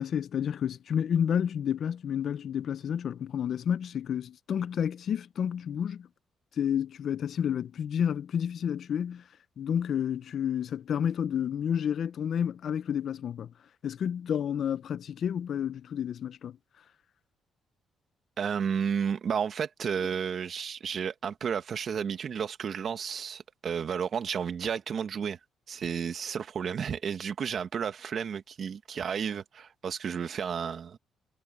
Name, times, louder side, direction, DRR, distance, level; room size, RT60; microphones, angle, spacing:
voice 1, 0.0-6.1 6.6-9.2 9.6-13.5 13.8-16.6, left 8 dB, 60° left, 0.6 m, -30 dB
voice 2, 18.4-25.4 25.7-31.0, right 7 dB, 55° right, 1.8 m, -32 dB
cardioid pair, 90°, 0 cm